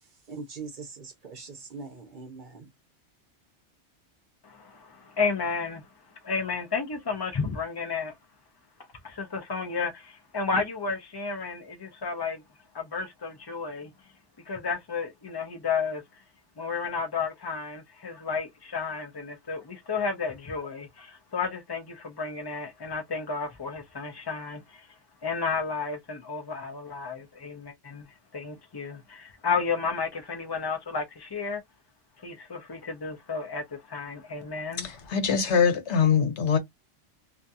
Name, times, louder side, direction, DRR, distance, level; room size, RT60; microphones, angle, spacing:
voice 1, 0.3-2.7, right 4 dB, 50° right, 0.7 m, -41 dB
voice 2, 4.4-5.9 6.2-8.1 9.0-12.4 12.7-13.9 14.5-16.2 16.6-31.6 32.2-34.9, left 5 dB, 40° left, 0.3 m, -32 dB
voice 3, 34.8-36.6, left 6 dB, 75° left, 1.1 m, -23 dB
2.5 x 2.3 x 2.6 m
omnidirectional pair, 1.2 m